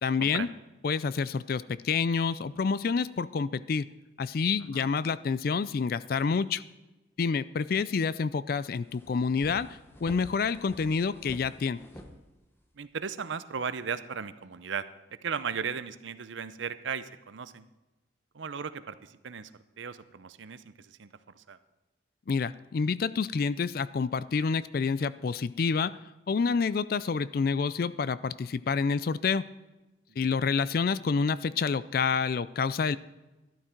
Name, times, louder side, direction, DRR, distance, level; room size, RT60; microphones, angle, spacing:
voice 1, 0.0-0.5 0.8-3.9 4.2-6.6 7.2-9.7 10.0-11.8 22.3-25.9 26.3-29.4 30.2-33.0, left 5 dB, 50° left, 17 dB, 0.4 m, -28 dB
sound 1, 8.8-12.9, left 1 dB, 10° left, 1.0 m, -49 dB
voice 2, 12.8-14.8 15.2-17.7 18.3-19.5 19.8-21.1 21.4-21.6 30.2-30.3, right 6 dB, 80° right, 13 dB, 0.6 m, -36 dB
12.5 x 12.0 x 4.5 m, 1.1 s
head